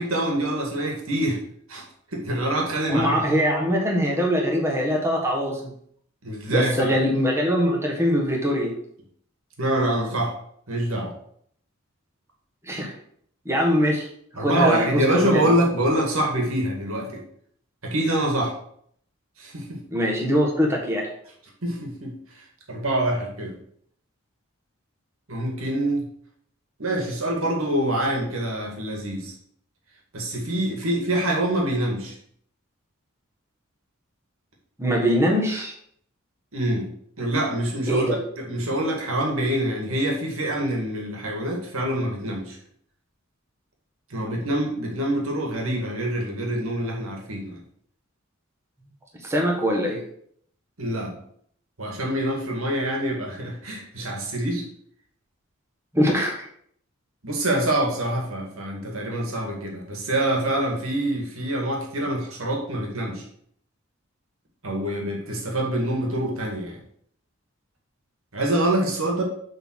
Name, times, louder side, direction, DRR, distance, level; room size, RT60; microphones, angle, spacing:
voice 1, 0.0-1.4 1.7-1.8 2.1-3.2 6.2-7.0 9.6-10.3 10.7-11.1 14.4-17.2 17.8-18.5 19.4-19.8 21.6-22.2 22.7-23.5 25.3-26.1 26.8-29.3 30.1-32.2 36.5-36.9 37.2-38.1 38.4-42.6 44.1-47.6 50.8-51.1 51.8-54.7 57.2-63.2 64.6-66.8 68.3-69.2, right 1 dB, 80° right, 0 dB, 2.2 m, -25 dB
voice 2, 2.9-5.7 6.5-8.7 12.7-12.9 13.4-14.1 14.4-15.4 19.9-21.1 34.8-35.7 37.9-38.2 49.2-50.0 55.9-56.4, equal, 15° right, -1 dB, 1.5 m, -22 dB
8.0 x 3.9 x 6.4 m, 0.66 s
head